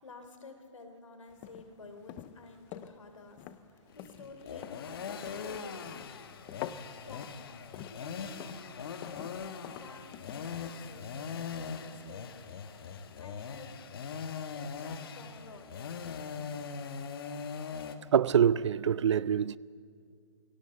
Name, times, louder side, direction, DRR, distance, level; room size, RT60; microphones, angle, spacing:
voice 1, 0.0-3.4 3.9-5.9 6.9-9.5 9.8-12.5 13.2-13.7 14.5-16.1, left 3 dB, 85° left, 3.2 m, -51 dB
sound 1, 1.3-10.9, left 12 dB, 15° left, 0.4 m, -48 dB
sound 2, 3.9-18.0, left 6 dB, 50° left, 1.5 m, -41 dB
voice 2, 18.1-19.6, right 8 dB, 65° right, 0.5 m, -25 dB
19.5 x 17.5 x 7.8 m
hypercardioid pair, 160°, 16 cm